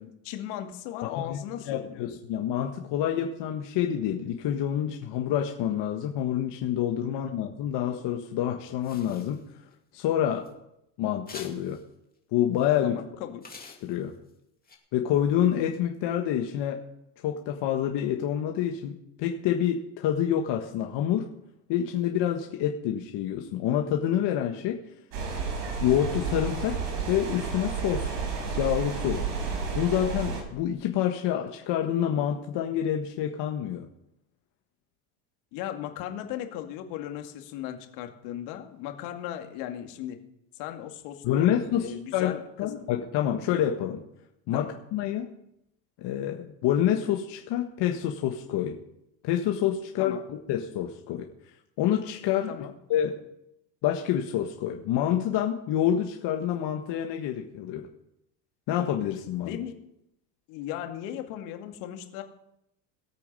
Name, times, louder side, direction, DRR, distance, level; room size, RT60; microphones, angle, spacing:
voice 1, 0.0-2.1 12.8-13.4 35.5-40.2 40.5-42.9 44.5-44.7 50.0-50.2 52.5-52.7 59.4-59.7 60.5-62.2, left 11 dB, 70° left, 5 dB, 2.3 m, -37 dB
voice 2, 1.0-9.4 9.9-10.5 11.0-11.8 12.3-13.0 13.8-14.1 14.9-16.8 17.2-21.3 21.7-24.8 25.8-26.8 27.1-28.1 28.6-29.3 29.7-33.9 41.2-44.0 44.5-45.3 46.0-48.8 49.2-51.3 51.8-52.6 52.9-53.2 53.8-57.8 58.7-59.6, left 10 dB, 55° left, 2 dB, 1.5 m, -27 dB
sound 1, 8.8-9.7 10.3-10.5 11.3-11.8 12.6-12.7 13.4-14.3 14.7-14.8, left 5 dB, 20° left, 2.5 m, -46 dB
sound 2, 25.1-30.4, right 5 dB, 85° right, 6.0 m, -31 dB
18.0 x 8.5 x 5.5 m, 0.82 s
supercardioid pair, 110°, 50 cm